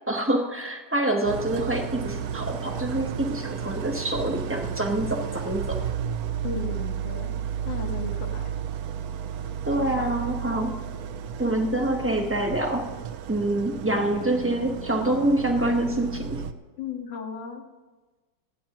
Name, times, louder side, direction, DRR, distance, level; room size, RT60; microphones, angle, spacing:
voice 1, 0.1-5.8 9.7-10.8 11.4-12.9 13.3-16.4, right 1 dB, 10° right, 2 dB, 0.7 m, -26 dB
Idling, 1.3-16.5, right 8 dB, 70° right, 0.9 m, -33 dB
voice 2, 6.4-8.5 9.8-10.1 16.8-17.6, left 5 dB, 65° left, 2 dB, 2.0 m, -36 dB
29.5 x 10.0 x 3.0 m, 1.2 s
omnidirectional pair, 2.2 m